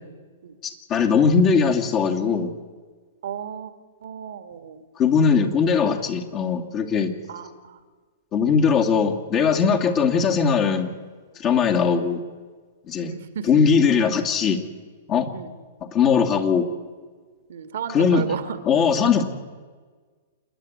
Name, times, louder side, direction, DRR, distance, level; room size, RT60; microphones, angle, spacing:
voice 1, 0.6-2.5 5.0-7.1 8.3-10.9 11.4-12.2 12.9-13.1 13.5-14.6 15.1-15.3 15.9-16.7 17.9-18.2 18.7-19.2, left 6 dB, 35° left, 2 dB, 2.3 m, -20 dB
voice 2, 3.2-3.7 4.0-4.8 7.3-7.8 9.7-9.8 13.0-13.5 15.3-15.5 17.5-19.1, right 8 dB, 65° right, 11 dB, 1.5 m, -34 dB
28.0 x 10.5 x 9.7 m, 1.5 s
figure-of-eight pair, 105°, 0 cm